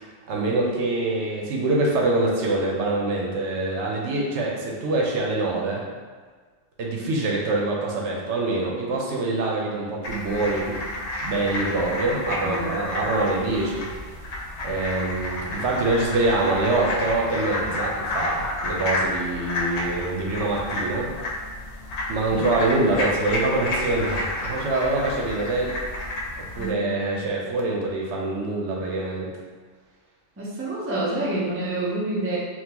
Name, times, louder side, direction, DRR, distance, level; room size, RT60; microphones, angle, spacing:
voice 1, 0.0-5.8 6.8-10.8 11.2-13.9 14.6-21.1 22.1-25.8 26.4-29.4, right 2 dB, 75° right, -2 dB, 0.9 m, -25 dB
sound 1, 10.0-26.7, left 1 dB, 75° left, 0.9 m, -30 dB
voice 2, 12.4-12.8 22.3-22.6 26.6-27.3 30.4-32.4, right 1 dB, 15° right, -6 dB, 0.5 m, -28 dB
3.7 x 2.4 x 2.9 m, 1.5 s
omnidirectional pair, 1.2 m